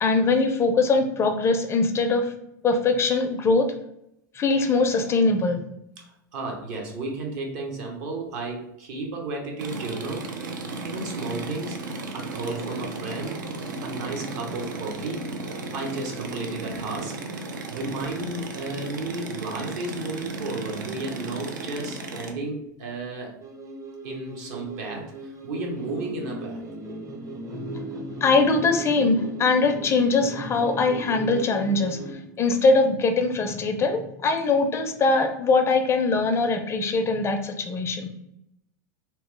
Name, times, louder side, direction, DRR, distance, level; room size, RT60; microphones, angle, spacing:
voice 1, 0.0-2.3 2.6-3.6 4.3-5.6 27.5-38.1, left 3 dB, 25° left, 6 dB, 0.4 m, -22 dB
voice 2, 6.0-10.4 10.8-11.8 12.1-13.4 13.8-15.2 15.7-17.2 17.7-23.4 24.0-26.6, right 2 dB, 65° right, 1 dB, 0.8 m, -33 dB
sound 1, 9.6-22.3, right 3 dB, 85° right, 0.4 m, -35 dB
sound 2, 23.4-32.1, right 2 dB, 30° right, 0.5 m, -37 dB
2.9 x 2.0 x 3.1 m, 0.79 s
hypercardioid pair, 105°, 10 cm